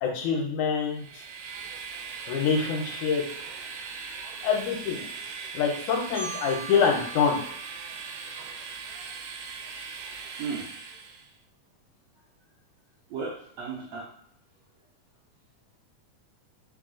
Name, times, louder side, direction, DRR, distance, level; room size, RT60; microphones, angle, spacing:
voice 1, 0.0-1.2 2.3-3.2 4.4-5.0 5.5-7.4, left 6 dB, 80° left, 1 dB, 2.1 m, -25 dB
Train, 0.9-11.3, right 5 dB, 90° right, 2.1 m, -40 dB
voice 2, 5.0-5.5 10.4-10.7 13.1-14.1, right 5 dB, 70° right, -5 dB, 1.6 m, -36 dB
Marimba xylophone, 6.1-9.0, right 5 dB, 25° left, 0.6 m, -43 dB
4.8 x 2.3 x 3.6 m, 0.65 s
omnidirectional pair, 3.6 m